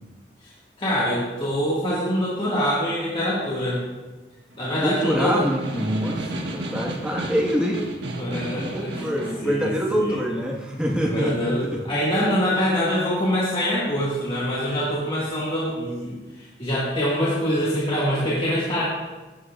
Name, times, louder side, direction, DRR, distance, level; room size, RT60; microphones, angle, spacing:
voice 1, 0.8-3.8 4.5-5.4 8.2-9.1 9.4-10.2 11.1-18.8, equal, 30° left, -8 dB, 1.9 m, -24 dB
Snare drum, 4.5-9.5, right 1 dB, 90° right, 1.4 m, -34 dB
voice 2, 4.8-7.9 8.5-11.3 11.7-11.8, equal, 5° right, -2 dB, 1.5 m, -25 dB
15.0 x 11.0 x 2.5 m, 1.2 s
head